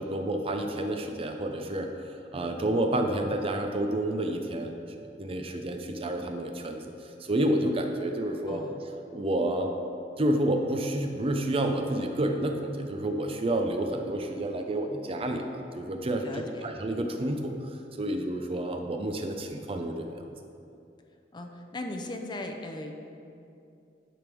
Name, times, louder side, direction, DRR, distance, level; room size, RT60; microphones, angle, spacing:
voice 1, 0.0-4.7 5.2-6.8 7.2-8.6 9.1-9.7 10.2-17.7 18.0-20.2, right 1 dB, 35° right, 4 dB, 0.5 m, -29 dB
voice 2, 8.5-8.8 16.2-16.7 21.3-22.9, left 2 dB, 25° left, 3 dB, 0.6 m, -38 dB
10.0 x 3.5 x 6.1 m, 2.6 s
head